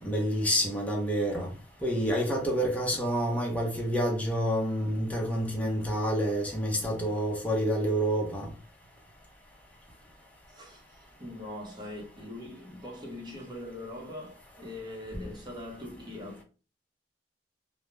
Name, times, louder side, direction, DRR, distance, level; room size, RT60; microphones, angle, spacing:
voice 1, 0.0-1.5 1.8-8.5, equal, 10° left, 0.6 m, -28 dB
voice 2, 10.5-16.4, left 1 dB, 25° right, 0.8 m, -42 dB
2.3 x 2.0 x 3.0 m
head